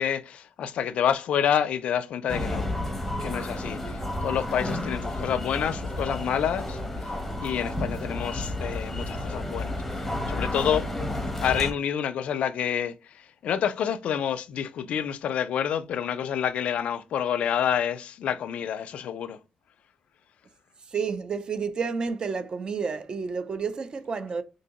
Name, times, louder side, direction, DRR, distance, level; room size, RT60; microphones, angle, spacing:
voice 1, 0.0-2.7 3.2-10.0 10.3-10.9 11.4-19.4, left 9 dB, 65° left, 0.4 m, -28 dB
sound 1, 2.3-11.7, left 1 dB, 10° left, 0.9 m, -31 dB
voice 2, 20.9-24.4, right 5 dB, 40° right, 0.5 m, -30 dB
3.5 x 2.7 x 2.9 m
cardioid pair, 100°, 2 cm